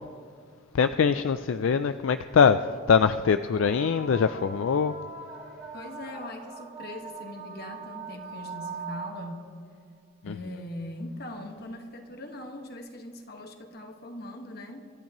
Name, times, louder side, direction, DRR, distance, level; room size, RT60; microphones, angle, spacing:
voice 1, 0.7-5.0 10.2-10.3, left 6 dB, 70° left, 10 dB, 0.4 m, -23 dB
sound 1, 3.5-9.6 11.1-11.2 12.0-12.1, right 4 dB, 35° right, 1.6 m, -41 dB
voice 2, 5.7-9.5 10.2-14.9, left 1 dB, 50° left, 4 dB, 1.5 m, -41 dB
26.0 x 13.5 x 3.0 m, 2.1 s
head